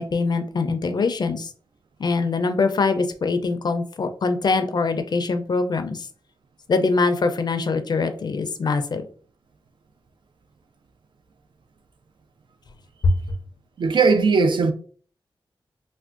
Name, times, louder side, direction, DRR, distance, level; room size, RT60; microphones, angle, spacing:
voice 1, 0.0-1.5 2.0-6.1 6.7-9.0 13.0-13.2, left 3 dB, 50° left, 0.4 m, -23 dB
voice 2, 13.8-14.7, right 4 dB, 60° right, 0.4 m, -18 dB
3.4 x 2.1 x 2.4 m
wide cardioid pair, 130°, 9 cm